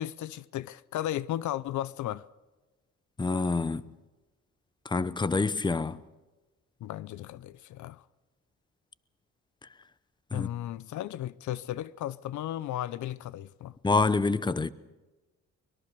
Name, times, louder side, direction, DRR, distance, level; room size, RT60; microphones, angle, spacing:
voice 1, 0.0-2.3 6.8-8.0 10.3-13.7, left 12 dB, 75° left, 0.7 m, -35 dB
voice 2, 3.2-3.9 4.8-6.0 10.3-10.5 13.8-14.7, left 3 dB, 15° left, 0.8 m, -27 dB
23.5 x 22.0 x 6.9 m
cardioid pair, 90°, 30 cm